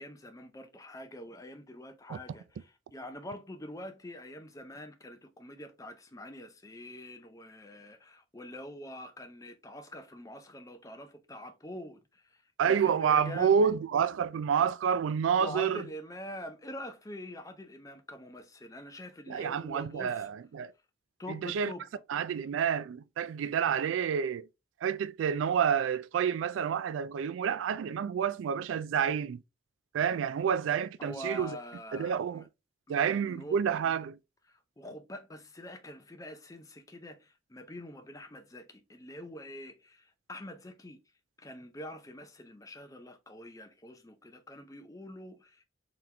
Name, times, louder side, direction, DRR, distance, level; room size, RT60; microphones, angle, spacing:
voice 1, 0.0-13.7 15.4-20.3 21.2-21.9 31.0-32.5 32.9-33.6 34.5-41.0 41.4-45.6, left 1 dB, 15° left, 0.5 m, -45 dB
voice 2, 12.6-15.9 19.3-20.7 21.3-21.7 22.1-24.5 24.8-29.4 29.9-31.6 31.9-32.5 32.9-34.2, right 7 dB, 80° right, 0.3 m, -29 dB
3.9 x 2.9 x 3.3 m
head